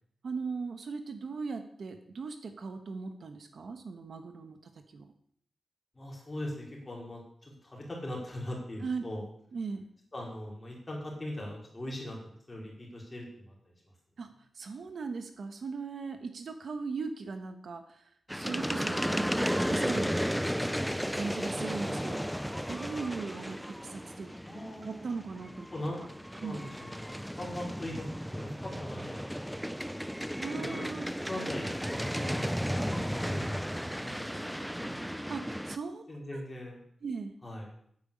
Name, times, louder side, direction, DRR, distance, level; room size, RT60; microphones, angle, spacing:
voice 1, 0.2-5.1 8.8-9.0 9.5-9.9 14.2-14.3 14.5-20.1 21.1-22.3 22.7-24.3 24.8-26.1 26.4-26.6 30.4-31.1 35.3-36.0 36.3-36.4 37.0-37.3, right 4 dB, 60° right, 7 dB, 1.3 m, -39 dB
voice 2, 5.9-9.2 10.1-13.7 24.4-25.0 25.7-26.0 26.4-29.5 29.7-30.0 30.5-30.8 31.2-35.1 36.1-36.8 37.4-37.7, left 1 dB, 20° left, -3 dB, 4.7 m, -41 dB
sound 1, 18.3-35.8, equal, ahead, 0.5 m, -34 dB
9.6 x 9.1 x 8.7 m, 0.67 s
wide cardioid pair, 160°, 0 cm